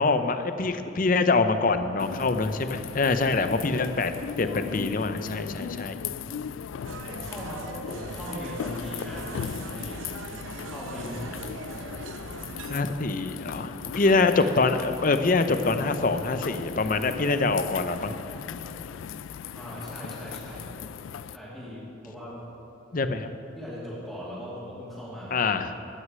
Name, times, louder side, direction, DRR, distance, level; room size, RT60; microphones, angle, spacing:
voice 1, 0.0-6.0 12.7-18.1 22.9-23.3 25.3-25.7, left 3 dB, 45° left, 9 dB, 0.6 m, -25 dB
sound 1, 2.0-21.4, left 8 dB, 80° left, 0.3 m, -38 dB
voice 2, 5.8-6.4 7.0-10.0 10.6-11.4 18.4-18.8 19.5-20.8 21.3-22.4 23.6-25.4, equal, ahead, -9 dB, 2.6 m, -39 dB
sound 2, 6.8-12.8, right 4 dB, 90° right, 0.7 m, -41 dB
15.0 x 6.5 x 9.4 m, 2.8 s
head